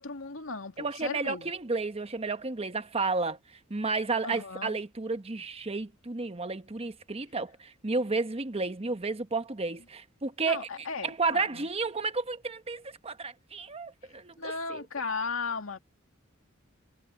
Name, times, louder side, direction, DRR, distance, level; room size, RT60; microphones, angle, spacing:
voice 1, 0.0-1.5 4.2-4.8 10.4-11.7 14.4-15.8, left 4 dB, 85° left, 2.2 m, -36 dB
voice 2, 0.8-3.4 3.7-10.7 11.0-14.3 14.7-14.8, right 3 dB, 30° right, 1.0 m, -32 dB
head